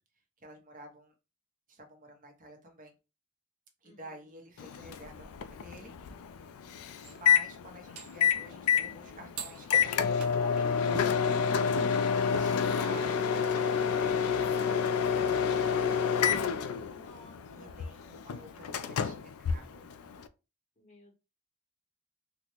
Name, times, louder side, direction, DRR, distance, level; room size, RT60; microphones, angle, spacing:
voice 1, 0.4-1.1 1.7-2.9 3.8-5.9 7.1-10.7 11.7-16.2 17.6-19.9, right 1 dB, 35° right, 3 dB, 0.8 m, -50 dB
voice 2, 3.8-4.3 16.9-17.9 20.8-21.1, left 1 dB, 30° left, 2 dB, 0.7 m, -56 dB
Microwave oven, 4.6-20.3, left 7 dB, 75° left, 0.3 m, -29 dB
sound 1, 7.0-7.2 8.0-8.2 9.4-9.7 10.2-10.6 10.9-11.4 11.8-12.8 13.6-13.7 13.9-14.0 15.5-15.6, right 5 dB, 85° right, 0.6 m, -43 dB
3.9 x 2.1 x 2.9 m, 0.30 s
head